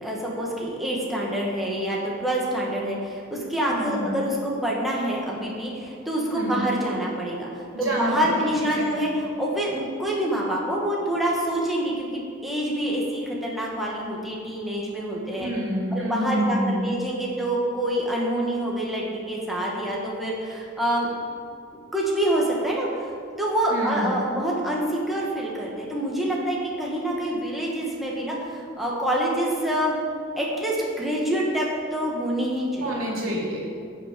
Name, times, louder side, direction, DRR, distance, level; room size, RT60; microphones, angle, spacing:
voice 1, 0.0-15.5 15.9-21.1 21.7-22.9 23.4-29.9 30.4-33.0, right 1 dB, ahead, -4 dB, 1.7 m, -26 dB
voice 2, 3.7-4.0 6.3-6.6 7.7-8.1 8.8-9.0 15.3-16.9 23.7-24.1 32.8-33.7, equal, 80° right, -3 dB, 2.7 m, -28 dB
15.5 x 6.0 x 5.3 m, 2.2 s
head